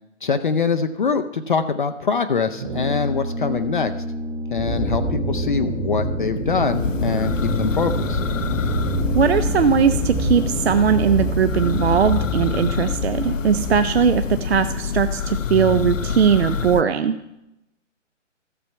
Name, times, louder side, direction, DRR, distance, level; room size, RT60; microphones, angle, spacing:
voice 1, 0.2-3.9 4.5-7.3 7.6-8.2, left 5 dB, 45° left, 8 dB, 0.5 m, -23 dB
Brass instrument, 2.6-10.1, equal, 30° right, 1.8 m, -32 dB
sound 1, 4.6-13.8, right 1 dB, 5° left, 0.8 m, -26 dB
Church bell, 6.5-16.8, left 7 dB, 90° left, 0.7 m, -27 dB
voice 2, 9.1-17.2, right 7 dB, 55° right, 10 dB, 0.6 m, -19 dB
14.5 x 7.0 x 4.5 m, 0.90 s
hypercardioid pair, 155°, 37 cm